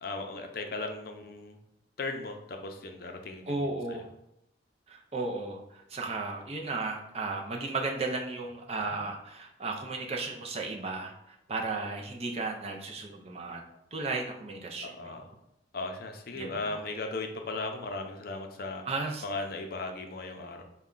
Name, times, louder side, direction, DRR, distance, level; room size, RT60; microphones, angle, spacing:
voice 1, 0.0-1.6 2.0-4.0 14.8-15.3 15.7-18.8 19.2-20.6, left 3 dB, 55° left, 4 dB, 0.5 m, -37 dB
voice 2, 3.5-4.1 4.9-13.6 13.9-15.2 16.4-16.8 18.9-19.2, right 3 dB, 35° right, 1 dB, 0.5 m, -35 dB
4.1 x 2.2 x 3.7 m, 0.83 s
head